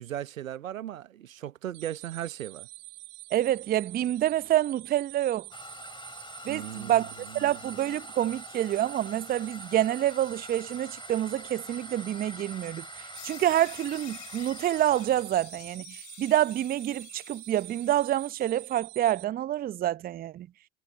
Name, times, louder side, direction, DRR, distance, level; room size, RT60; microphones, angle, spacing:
voice 1, 0.0-2.7 6.5-7.5, right 11 dB, 70° right, 0.9 m, -37 dB
sound 1, 1.7-19.2, right 22 dB, 40° right, 1.5 m, -46 dB
voice 2, 3.3-5.5 6.4-12.8 13.2-20.5, right 12 dB, 20° right, 0.8 m, -27 dB
Toilet flush, 5.5-15.3, left 4 dB, 10° left, 4.3 m, -46 dB
sound 2, 13.1-18.7, left 19 dB, 40° left, 4.9 m, -50 dB
figure-of-eight pair, 85°, 41 cm